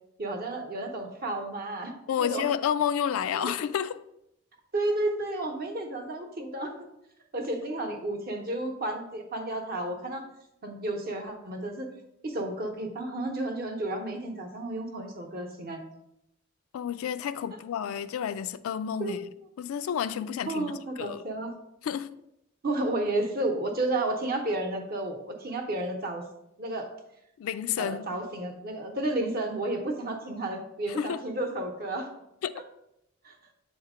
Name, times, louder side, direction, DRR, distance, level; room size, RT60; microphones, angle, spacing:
voice 1, 0.2-2.5 3.3-3.5 4.7-6.9 7.3-10.2 10.6-11.9 12.2-15.8 19.0-19.2 20.5-21.5 22.6-26.3 26.6-26.9 27.8-32.1 32.5-32.6 33.2-33.3, right 2 dB, 45° right, 0.8 m, -32 dB
voice 2, 2.1-4.0 16.7-19.2 19.6-20.7 21.0-21.2 21.8-22.2 27.4-28.1 31.0-31.2 32.4-32.5, left 8 dB, 80° left, 0.3 m, -30 dB
7.3 x 2.9 x 4.9 m
head